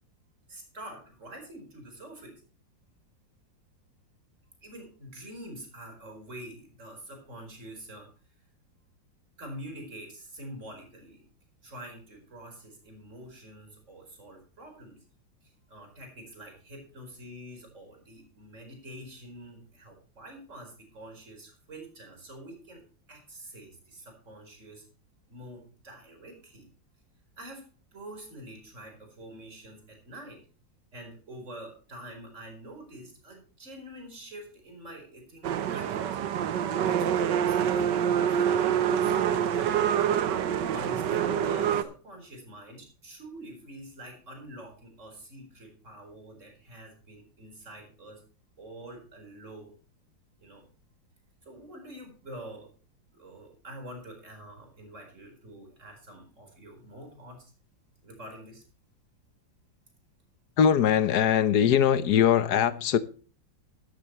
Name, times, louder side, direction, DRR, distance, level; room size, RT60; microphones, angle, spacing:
voice 1, 0.5-2.4 4.6-8.1 9.4-11.2 11.6-15.0 15.4-22.8 23.1-24.8 25.3-26.7 27.4-27.6 27.9-30.4 30.9-36.2 36.8-40.0 40.7-48.2 48.6-49.7 50.4-50.6 51.4-52.7 53.1-57.5 58.0-58.6, right 1 dB, 40° right, 4.9 m, -46 dB
sound 1, 35.4-41.8, right 9 dB, 70° right, 1.5 m, -26 dB
voice 2, 60.6-63.0, left 8 dB, 60° left, 1.3 m, -21 dB
13.5 x 13.0 x 3.1 m
omnidirectional pair, 2.1 m